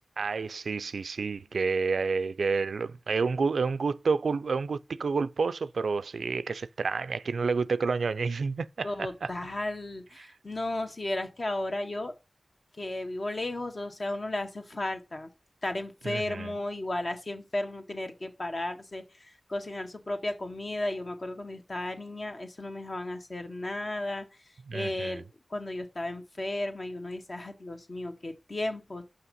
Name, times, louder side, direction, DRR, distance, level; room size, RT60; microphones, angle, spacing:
voice 1, 0.2-9.3 10.2-10.3 16.0-16.5 24.7-25.2, right 4 dB, 85° right, 0.4 m, -29 dB
voice 2, 8.8-12.1 12.8-15.3 15.6-24.2 24.7-25.2 25.5-29.0, left 1 dB, 50° left, 1.7 m, -34 dB
5.7 x 5.7 x 5.3 m
cardioid pair, 45°, 0 cm